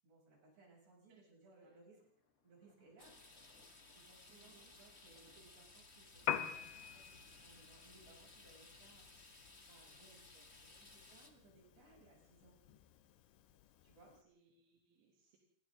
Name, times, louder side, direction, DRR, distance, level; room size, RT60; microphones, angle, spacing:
voice 1, 0.0-2.0 2.4-3.2 3.9-10.2 10.9-12.6 13.8-14.2, right 3 dB, 70° right, -2 dB, 9.9 m, -65 dB
Thunder, 2.0-11.8, left 3 dB, 65° left, 5.6 m, -72 dB
voice 2, 2.6-2.9 4.3-4.7 10.1-10.9 14.1-15.4, right 5 dB, 85° right, -1 dB, 5.3 m, -70 dB
sound 1, 3.0-11.3, left 3 dB, 30° left, 1.1 m, -60 dB
Piano, 6.2-14.2, left 10 dB, 85° left, 3.4 m, -47 dB
29.0 x 25.5 x 3.9 m, 0.62 s
omnidirectional pair, 5.1 m